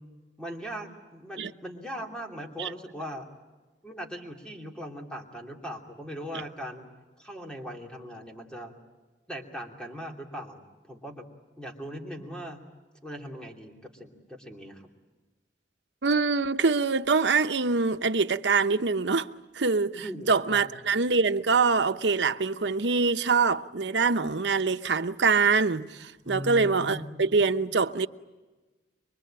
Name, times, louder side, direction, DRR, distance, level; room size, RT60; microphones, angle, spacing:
voice 1, 0.4-3.3 3.8-6.9 7.2-8.8 9.3-11.3 11.6-12.6 13.0-14.8 19.9-20.8 26.2-27.3, equal, 5° left, 2.9 m, -39 dB
voice 2, 16.0-19.3 19.5-28.1, right 4 dB, 90° right, 0.9 m, -24 dB
24.5 x 24.0 x 8.8 m
head